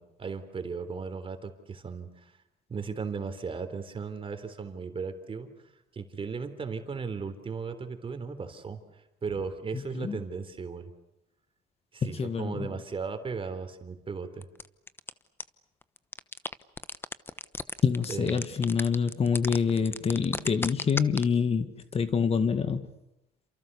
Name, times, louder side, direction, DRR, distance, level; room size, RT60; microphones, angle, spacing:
voice 1, 0.2-2.2 2.7-5.5 5.9-8.8 9.2-10.9 11.9-14.5 18.1-18.4, right 5 dB, 30° right, 3.7 m, -36 dB
voice 2, 9.7-10.2 12.0-12.8 17.8-22.9, left 6 dB, 35° left, 2.1 m, -27 dB
sound 1, 14.4-15.1 15.4-15.5 15.8-21.2, left 2 dB, 15° left, 1.1 m, -33 dB
29.0 x 28.0 x 7.0 m
cardioid pair, 110°, 17 cm